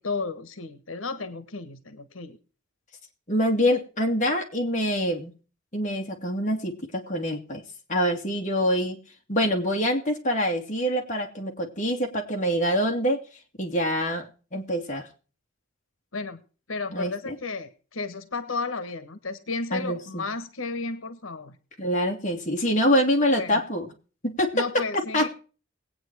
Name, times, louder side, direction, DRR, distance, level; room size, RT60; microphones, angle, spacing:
voice 1, 0.0-2.4 16.1-16.4 16.7-21.5 23.4-23.6 24.5-25.3, left 3 dB, 90° left, 12 dB, 1.3 m, -33 dB
voice 2, 3.3-5.3 5.7-7.6 7.9-9.0 9.3-13.2 13.6-15.1 16.9-17.4 19.7-20.3 21.8-23.9 24.2-24.6 24.9-25.3, equal, 40° left, 2 dB, 2.5 m, -25 dB
20.0 x 9.1 x 4.7 m, 0.37 s
head